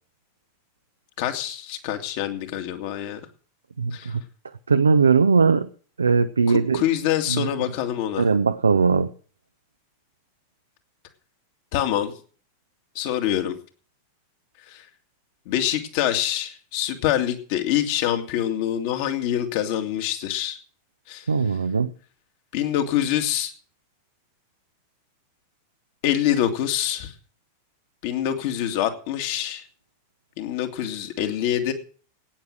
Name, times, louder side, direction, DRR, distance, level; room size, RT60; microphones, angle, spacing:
voice 1, 1.2-3.2 3.9-4.1 6.5-8.3 11.7-12.2 12.9-13.6 14.7-14.9 15.5-20.6 21.1-21.3 22.5-23.5 26.0-27.1 28.0-29.6 30.4-31.7, left 11 dB, 50° left, 6 dB, 2.3 m, -25 dB
voice 2, 3.8-4.2 4.7-5.7 6.0-6.8 7.3-7.5 8.2-9.1 21.3-21.9, right 5 dB, 75° right, 10 dB, 0.7 m, -19 dB
16.0 x 9.6 x 6.3 m, 0.42 s
figure-of-eight pair, 90°, 0 cm